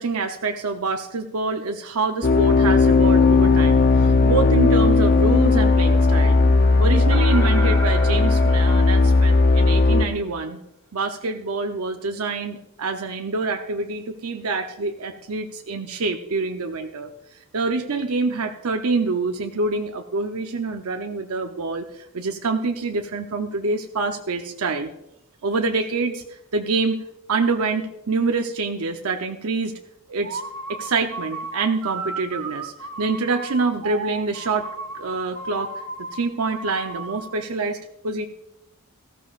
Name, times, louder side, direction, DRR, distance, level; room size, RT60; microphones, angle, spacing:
voice 1, 0.0-6.4 6.8-10.6 10.9-17.1 17.5-24.9 25.4-26.2 26.5-27.0 27.3-29.7 30.1-30.4 30.7-34.7 34.9-35.7 36.1-37.8 38.0-38.3, right 3 dB, 85° right, 4 dB, 0.7 m, -26 dB
sound 1, 2.2-10.1, left 3 dB, 45° left, 0.7 m, -16 dB
sound 2, 7.1-9.7, right 1 dB, 10° left, 1.9 m, -34 dB
sound 3, 30.2-37.4, right 3 dB, 60° right, 1.2 m, -34 dB
18.5 x 14.5 x 2.5 m, 0.88 s
head